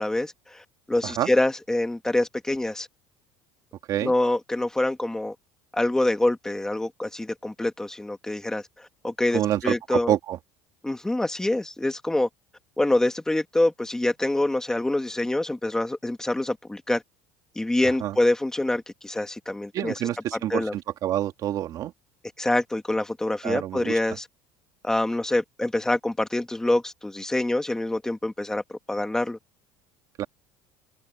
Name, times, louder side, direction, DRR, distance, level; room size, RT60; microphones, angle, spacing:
voice 1, 0.0-2.9 4.0-5.4 5.7-10.1 10.8-12.3 12.8-17.0 17.6-19.9 20.5-20.7 22.4-24.3 24.8-29.4, left 1 dB, 5° left, 2.0 m, -26 dB
voice 2, 9.3-10.4 18.0-18.2 19.7-21.9 23.4-24.0 30.2-30.3, right 12 dB, 50° right, 2.4 m, -27 dB
cardioid pair, 130°, 8 cm